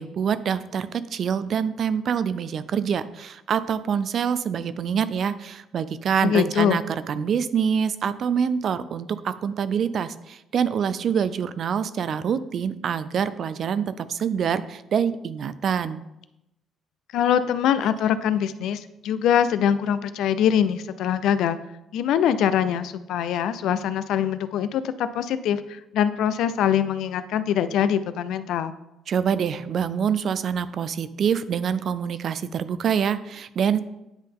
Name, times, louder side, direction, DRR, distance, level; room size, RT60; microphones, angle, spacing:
voice 1, 0.0-16.0 29.1-33.8, right 7 dB, 45° right, 15 dB, 0.3 m, -25 dB
voice 2, 6.2-6.8 17.1-21.6 21.9-28.7, left 9 dB, 70° left, 13 dB, 0.3 m, -23 dB
9.7 x 3.8 x 3.5 m, 0.91 s
cardioid pair, 160°, 0 cm